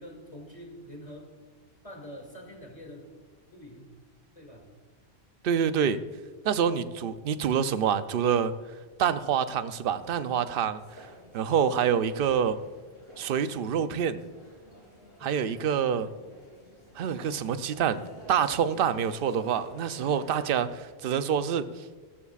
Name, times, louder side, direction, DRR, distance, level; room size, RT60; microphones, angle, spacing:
voice 1, 0.0-1.3 1.8-3.1 3.5-3.9 4.3-4.7 15.2-16.1 19.9-20.0, equal, 30° left, 0 dB, 2.6 m, -46 dB
voice 2, 5.4-6.0 6.4-8.5 9.0-11.1 11.3-12.6 13.2-14.2 15.2-16.1 17.0-18.0 18.3-21.8, right 8 dB, 60° right, 12 dB, 0.8 m, -26 dB
sound 1, 10.7-20.8, equal, 85° left, 3.3 m, -51 dB
17.0 x 14.0 x 2.5 m, 1.3 s
omnidirectional pair, 1.1 m